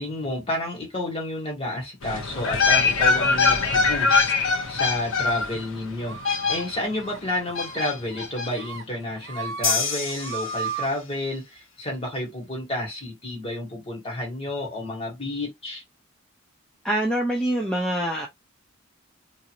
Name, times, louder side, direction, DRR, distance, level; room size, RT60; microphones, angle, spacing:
voice 1, 0.0-6.2 6.5-15.8, left 1 dB, 25° left, 1.4 m, -30 dB
sound 1, 2.0-7.0 7.6-8.5 8.8-8.9, left 4 dB, 75° left, 0.9 m, -23 dB
sound 2, 6.1-6.6 7.0-7.2 7.5-7.8 8.1-8.8 9.2-9.8 10.1-10.9, right 5 dB, 60° right, 0.7 m, -35 dB
sound 3, 9.6-11.2, left 5 dB, 90° left, 1.5 m, -28 dB
voice 2, 16.8-18.3, right 1 dB, 5° left, 0.5 m, -25 dB
3.0 x 2.6 x 2.5 m
head